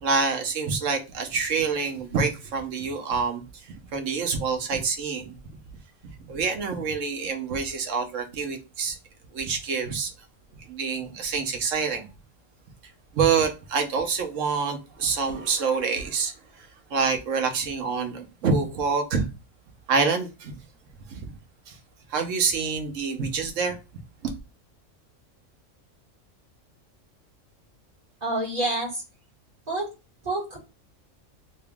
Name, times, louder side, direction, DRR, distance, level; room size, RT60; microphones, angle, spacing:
voice 1, 0.0-5.4 6.2-9.0 9.3-10.1 10.7-12.1 13.1-19.3 19.9-20.5 21.1-21.3 21.7-21.8 22.1-23.8 24.2-24.3, right 5 dB, 75° right, 1.2 m, -27 dB
voice 2, 28.2-29.0 29.7-29.9 30.2-30.6, right 2 dB, 30° right, 2.0 m, -27 dB
3.1 x 2.9 x 3.4 m
omnidirectional pair, 1.3 m